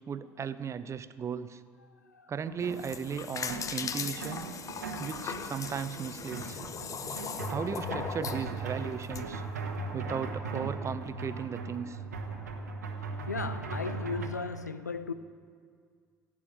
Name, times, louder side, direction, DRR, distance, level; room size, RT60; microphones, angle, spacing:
voice 1, 0.0-1.6 2.3-4.5 5.0-6.6 7.5-9.4 9.9-12.0, right 7 dB, 35° right, 0.7 m, -36 dB
sound 1, 2.5-14.3, right 3 dB, 85° right, 1.3 m, -39 dB
sound 2, 2.6-9.2, left 6 dB, 40° left, 0.9 m, -39 dB
voice 2, 13.0-15.1, left 4 dB, 90° left, 0.4 m, -36 dB
16.0 x 8.7 x 8.9 m
figure-of-eight pair, 55°, 9 cm